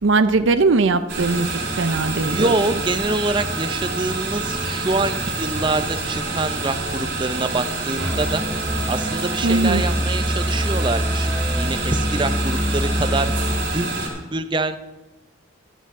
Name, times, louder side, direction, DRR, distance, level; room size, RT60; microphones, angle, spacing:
voice 1, 0.0-2.6 9.4-9.9, right 3 dB, 80° right, 11 dB, 0.6 m, -19 dB
sound 1, 1.1-14.1, right 2 dB, 60° right, 4.4 m, -27 dB
voice 2, 2.2-8.4 8.9-11.3 11.5-14.8, right 2 dB, 25° right, 10 dB, 0.6 m, -25 dB
Musical instrument, 8.0-13.7, equal, 5° left, 1.0 m, -25 dB
14.0 x 12.5 x 3.7 m, 1.1 s
head